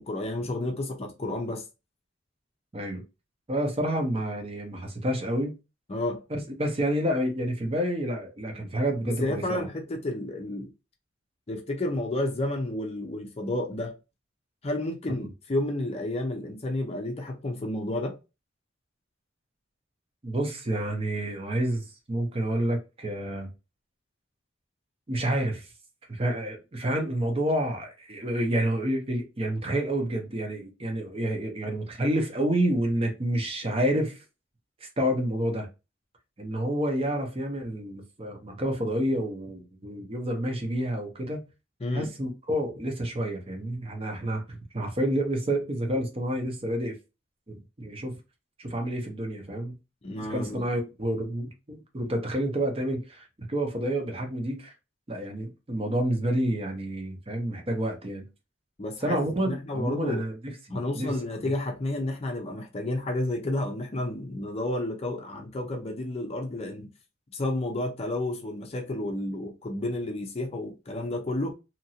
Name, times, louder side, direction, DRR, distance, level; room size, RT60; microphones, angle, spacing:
voice 1, 0.0-1.6 5.9-6.2 9.0-10.7 11.5-13.9 14.6-18.2 41.8-42.1 50.0-50.6 58.8-60.3 60.7-66.9 67.3-71.5, left 1 dB, 30° left, 0.5 m, -31 dB
voice 2, 3.5-5.5 6.3-9.7 15.1-15.3 20.2-23.5 25.1-25.7 26.1-34.2 35.0-35.7 36.4-41.4 41.9-47.0 47.5-48.2 48.6-49.7 50.2-54.7 55.1-58.3 59.0-60.4 60.9-61.2, right 1 dB, 30° right, 0.7 m, -29 dB
2.9 x 2.5 x 2.7 m
head